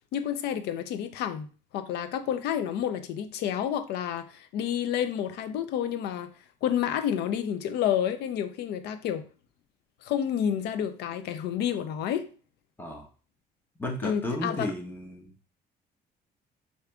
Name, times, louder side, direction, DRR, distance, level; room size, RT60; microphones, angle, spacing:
voice 1, 0.1-1.5 1.7-6.3 6.6-9.2 10.0-12.3 14.0-14.7, left 9 dB, 75° left, 0.5 m, -29 dB
voice 2, 12.8-13.1 13.8-15.3, left 1 dB, 10° left, 0.9 m, -33 dB
4.8 x 2.7 x 2.3 m
cardioid pair, 110°, 17 cm